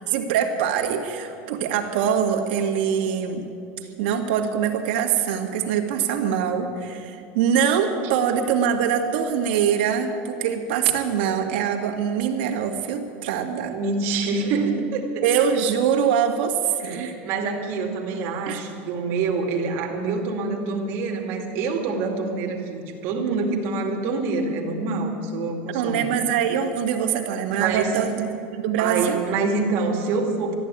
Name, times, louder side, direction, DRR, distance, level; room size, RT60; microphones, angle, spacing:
voice 1, 0.1-3.5 4.0-13.8 15.2-17.1 18.5-18.6 25.7-29.2, right 8 dB, 70° right, 3 dB, 2.0 m, -23 dB
voice 2, 13.7-15.2 16.8-26.0 27.6-27.9 28.8-30.6, right 4 dB, 45° right, 1 dB, 2.4 m, -26 dB
14.0 x 11.0 x 8.9 m, 2.6 s
supercardioid pair, 170°, 6 cm